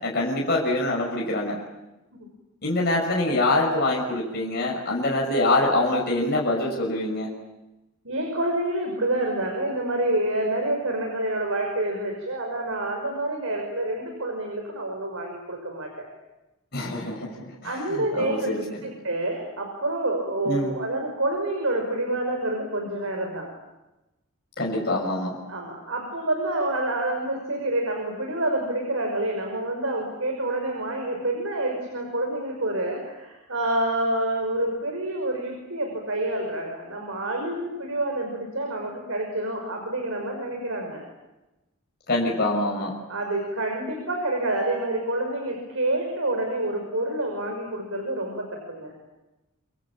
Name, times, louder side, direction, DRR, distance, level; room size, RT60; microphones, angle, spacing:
voice 1, 0.0-1.6 2.6-7.3 16.7-17.7 18.2-18.6 20.4-20.7 24.6-25.3 42.1-42.9, left 2 dB, 45° left, -3 dB, 6.3 m, -24 dB
voice 2, 8.0-16.1 17.6-23.5 25.5-41.0 43.1-48.9, right 1 dB, 65° right, 2 dB, 5.8 m, -28 dB
27.0 x 24.5 x 8.8 m, 1.0 s
head